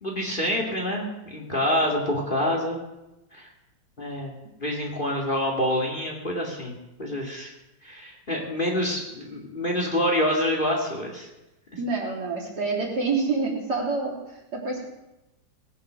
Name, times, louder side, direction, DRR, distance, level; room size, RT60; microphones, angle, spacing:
voice 1, 0.0-2.8 3.3-3.5 4.0-4.3 4.6-7.5 7.8-11.3, left 1 dB, 25° left, 0 dB, 2.4 m, -27 dB
voice 2, 11.8-14.2 14.5-14.9, right 4 dB, 55° right, -3 dB, 3.8 m, -27 dB
19.0 x 9.3 x 6.3 m, 0.96 s
omnidirectional pair, 2.1 m